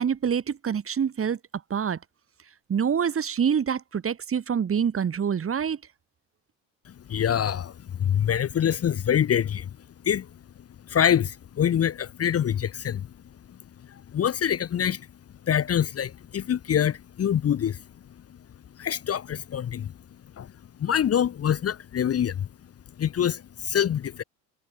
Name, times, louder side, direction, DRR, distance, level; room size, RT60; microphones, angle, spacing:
voice 1, 0.0-1.4 1.7-2.0 2.7-5.8, right 7 dB, 30° right, 2.5 m, -26 dB
voice 2, 6.9-9.7 10.0-10.3 10.9-13.1 13.9-15.1 15.5-17.8 18.8-19.9 20.4-20.5 20.8-22.5 23.0-24.2, left 9 dB, 35° left, 1.3 m, -25 dB
hypercardioid pair, 80°, 43 cm